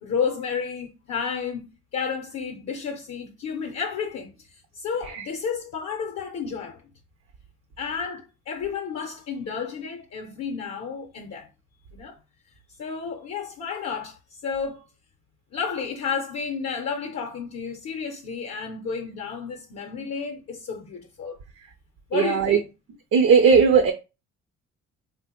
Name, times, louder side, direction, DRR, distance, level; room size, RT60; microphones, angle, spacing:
voice 1, 0.0-1.7 1.9-6.8 7.8-11.5 11.9-12.2 12.8-14.8 15.5-21.4 22.1-22.7, left 6 dB, 55° left, 0.6 m, -31 dB
voice 2, 22.1-22.6 23.1-23.9, right 6 dB, 50° right, 0.4 m, -17 dB
3.2 x 2.1 x 2.8 m
cardioid pair, 90°, 30 cm